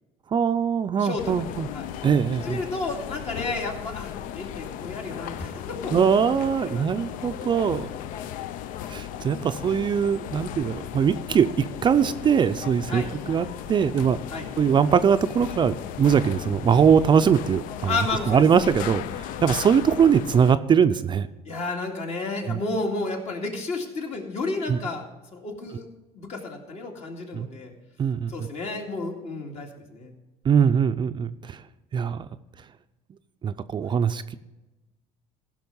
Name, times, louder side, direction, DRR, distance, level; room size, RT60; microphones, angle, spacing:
voice 1, 0.3-1.7 2.0-2.6 5.9-7.9 8.9-14.2 14.6-18.0 18.3-19.0 19.4-21.3 22.5-22.6 24.7-24.8 27.3-27.5 28.0-28.5 30.5-31.6 31.9-32.3 33.4-34.3, right 7 dB, 35° right, 10 dB, 0.4 m, -21 dB
voice 2, 1.0-1.9 2.4-6.8 7.7-8.4 9.4-9.5 12.9-13.1 14.3-14.5 17.9-18.4 19.4-19.6 21.4-25.0 25.3-25.9 26.1-27.7 28.3-30.1 33.9-34.0, left 3 dB, 50° left, 1 dB, 2.3 m, -32 dB
sound 1, 1.2-20.5, left 11 dB, 70° left, 0.5 m, -36 dB
15.5 x 5.9 x 5.4 m, 1.1 s
cardioid pair, 105°, 14 cm